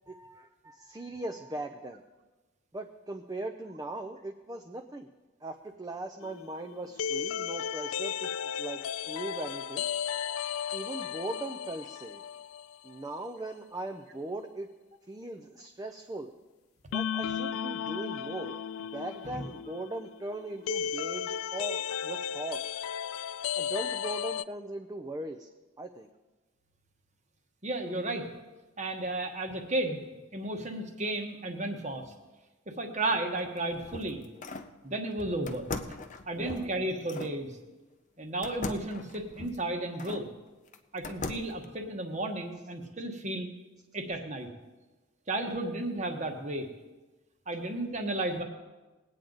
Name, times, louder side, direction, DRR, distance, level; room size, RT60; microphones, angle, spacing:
voice 1, 0.1-2.0 2.7-5.1 5.4-8.3 8.6-9.9 10.7-12.2 12.8-14.7 15.1-16.3 16.9-18.6 18.9-22.7 23.5-25.5 25.8-26.1 36.4-36.7, right 2 dB, 15° right, 5 dB, 0.5 m, -39 dB
sound 1, 6.2-12.9 13.2-13.3 16.9-24.4, left 8 dB, 80° left, 0.3 m, -35 dB
voice 2, 27.6-28.3 28.8-30.0 30.3-32.1 32.7-34.2 34.8-36.0 36.3-37.5 38.2-40.3 40.9-43.5 43.9-44.5 45.3-46.7 47.5-48.4, right 2 dB, 35° right, 5 dB, 1.2 m, -33 dB
sound 2, 33.4-34.7 35.5-37.4 38.4-40.3 40.7-41.6, left 3 dB, 35° left, 0.6 m, -40 dB
20.0 x 8.9 x 3.9 m, 1.2 s
head